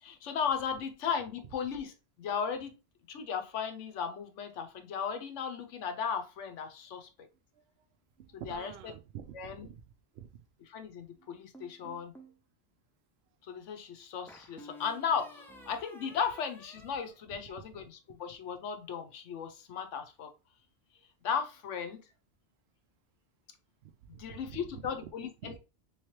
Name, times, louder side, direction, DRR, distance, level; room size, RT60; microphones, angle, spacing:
voice 1, 0.0-1.9 2.2-2.7 3.1-7.1 8.3-8.7 9.3-9.7 10.7-12.2 13.4-20.3 21.2-22.0 24.2-25.6, left 7 dB, 90° left, 1.1 m, -36 dB
voice 2, 8.2-9.8 10.1-10.3 11.2-11.4 17.3-17.4 17.7-17.8 23.8-25.1 25.4-25.6, right 9 dB, 65° right, 0.8 m, -48 dB
sound 1, 11.5-12.4 14.3-17.9, equal, 5° left, 0.3 m, -53 dB
3.4 x 3.2 x 3.0 m
omnidirectional pair, 1.2 m